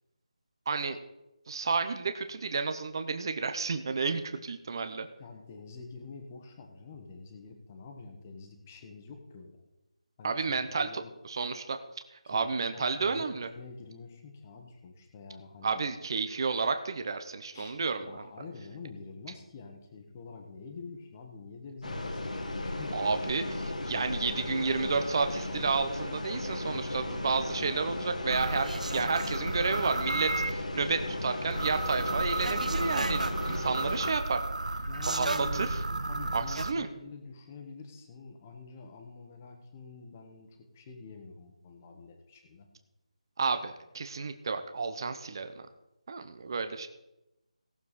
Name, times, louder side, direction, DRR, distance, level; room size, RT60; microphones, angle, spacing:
voice 1, 0.7-1.0 1.5-5.1 10.2-10.9 11.2-11.8 12.3-13.5 15.6-18.2 22.9-23.4 23.8-34.4 35.0-35.8 36.3-36.9 43.4-45.5 46.1-46.9, right 4 dB, 35° right, 8 dB, 0.8 m, -31 dB
voice 2, 5.2-9.6 10.2-11.1 12.2-15.8 17.5-23.0 24.2-25.1 34.7-35.7 36.0-42.7, left 4 dB, 20° left, 4 dB, 1.2 m, -47 dB
sound 1, 21.8-34.1, left 1 dB, 85° left, 1.6 m, -36 dB
sound 2, 28.3-30.5 31.5-36.7, right 2 dB, 90° right, 1.0 m, -33 dB
17.5 x 7.0 x 4.2 m, 0.95 s
figure-of-eight pair, 170°, 4 cm